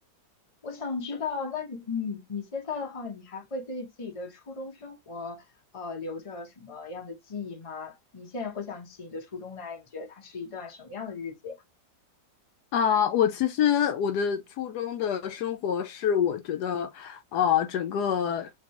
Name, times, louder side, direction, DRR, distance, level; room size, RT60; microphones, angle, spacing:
voice 1, 0.6-5.5 5.7-11.6, left 4 dB, 55° left, 0.3 m, -36 dB
voice 2, 12.7-18.5, left 8 dB, 70° left, 1.0 m, -26 dB
3.7 x 3.1 x 2.9 m
omnidirectional pair, 2.0 m